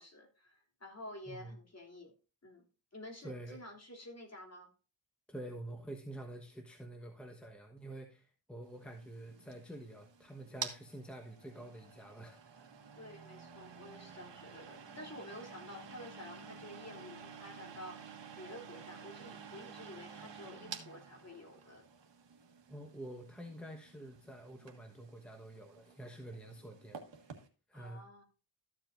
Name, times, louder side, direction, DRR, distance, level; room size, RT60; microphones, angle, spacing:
voice 1, 0.0-2.1 2.4-2.6 2.9-4.7 12.9-18.0 18.4-21.8 27.7-28.2, left 1 dB, 35° left, 1 dB, 3.0 m, -50 dB
voice 2, 1.3-1.6 3.2-3.6 5.3-12.7 22.7-27.0 27.7-28.0, right 1 dB, ahead, 3 dB, 1.2 m, -48 dB
sound 1, 8.8-27.5, right 6 dB, 65° right, 1.6 m, -51 dB
13.5 x 7.6 x 2.5 m, 0.34 s
wide cardioid pair, 85°, 46 cm